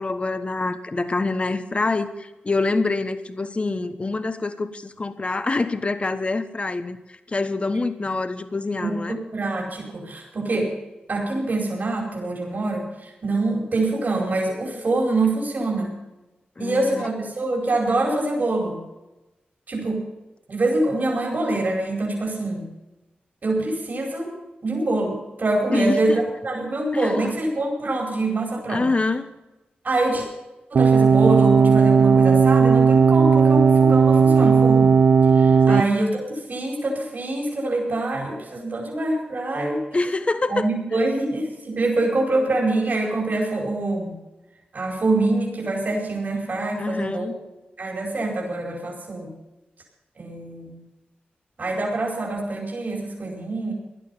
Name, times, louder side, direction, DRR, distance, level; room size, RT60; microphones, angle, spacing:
voice 1, 0.0-9.2 16.6-17.1 25.7-26.2 26.9-27.4 28.7-29.3 35.7-36.0 39.9-40.7 40.9-41.0 46.8-47.4, left 3 dB, 35° left, 9 dB, 1.3 m, -26 dB
voice 2, 8.8-10.7 11.1-15.9 16.6-18.8 19.7-20.0 20.5-22.6 23.4-24.3 24.6-28.9 29.8-30.2 30.7-35.0 35.3-39.8 40.5-44.1 44.7-47.3 47.8-49.3 50.2-50.8 51.6-53.7, right 2 dB, 55° right, -1 dB, 4.8 m, -25 dB
sound 1, 30.7-35.8, right 6 dB, 75° right, 0.5 m, -15 dB
16.5 x 11.5 x 5.7 m, 1.0 s
cardioid pair, 70°, 3 cm